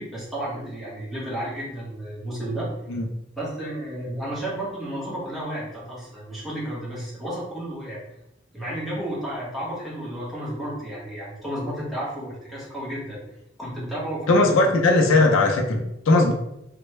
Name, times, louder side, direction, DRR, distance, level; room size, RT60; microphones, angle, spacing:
voice 1, 0.0-2.7 3.4-8.0 8.5-13.2 13.6-14.6, right 1 dB, ahead, -7 dB, 1.1 m, -32 dB
voice 2, 14.3-16.3, left 2 dB, 85° left, 3 dB, 0.5 m, -18 dB
3.2 x 2.1 x 3.1 m, 0.84 s
head